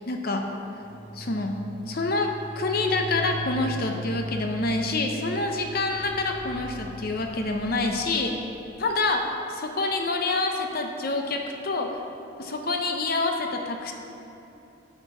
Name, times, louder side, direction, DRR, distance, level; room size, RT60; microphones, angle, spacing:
voice 1, 0.1-0.4 1.1-1.6 1.9-8.3 8.8-12.0 12.4-13.9, left 3 dB, 50° left, 3 dB, 0.6 m, -27 dB
sound 1, 0.8-9.1, right 1 dB, 30° left, 2.0 m, -38 dB
9.1 x 6.0 x 5.5 m, 2.8 s
head